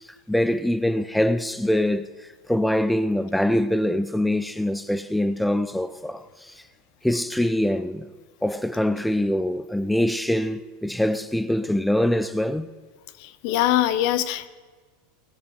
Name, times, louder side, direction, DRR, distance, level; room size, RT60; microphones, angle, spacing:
voice 1, 0.3-6.6 7.0-8.1 8.4-12.7, left 1 dB, 5° left, 0.5 m, -24 dB
voice 2, 13.2-14.5, left 13 dB, 60° left, 0.8 m, -22 dB
18.0 x 6.7 x 7.3 m
supercardioid pair, 125°, 0 cm